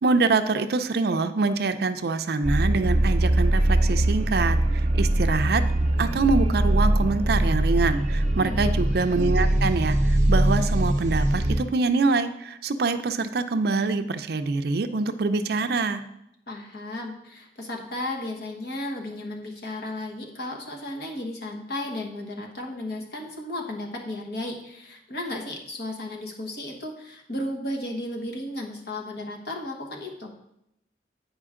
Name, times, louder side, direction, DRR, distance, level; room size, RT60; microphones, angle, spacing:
voice 1, 0.0-5.6 6.0-16.0, right 3 dB, 60° right, 9 dB, 0.5 m, -25 dB
sound 1, 2.4-11.6, right 1 dB, 45° right, 0.8 m, -22 dB
voice 2, 8.4-8.8 16.5-30.3, left 1 dB, 60° left, 0 dB, 1.3 m, -34 dB
8.8 x 5.0 x 3.7 m, 0.81 s
head